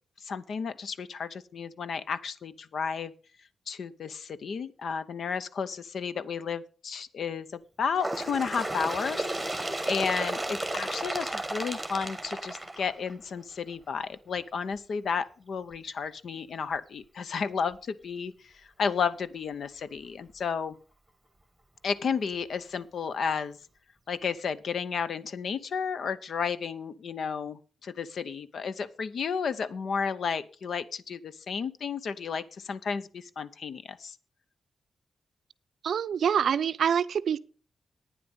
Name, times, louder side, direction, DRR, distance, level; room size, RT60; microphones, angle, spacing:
voice 1, 0.2-3.1 3.7-9.3 9.8-20.8 21.8-23.6 24.1-34.2, left 6 dB, 60° left, 0.6 m, -32 dB
Bird, 8.0-13.4 14.3-14.4 14.8-14.9 15.7-15.8 16.7-16.8 17.7-17.8, right 1 dB, 5° right, 1.5 m, -33 dB
voice 2, 35.8-37.4, right 8 dB, 70° right, 0.5 m, -26 dB
11.0 x 9.4 x 5.3 m
wide cardioid pair, 160°, 0 cm